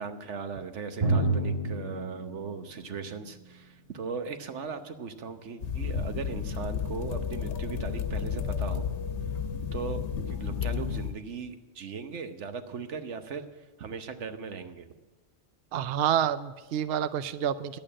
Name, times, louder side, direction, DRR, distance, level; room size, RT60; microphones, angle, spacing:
voice 1, 0.0-8.9 9.7-13.5 13.8-14.9, right 5 dB, 85° right, 9 dB, 1.3 m, -38 dB
Drum, 1.0-4.5, right 2 dB, 30° right, 2.1 m, -30 dB
sound 1, 5.6-11.2, left 7 dB, 90° left, 1.1 m, -32 dB
voice 2, 15.7-17.8, right 9 dB, 65° right, 13 dB, 0.7 m, -28 dB
11.0 x 8.8 x 8.6 m, 1.2 s
omnidirectional pair, 1.2 m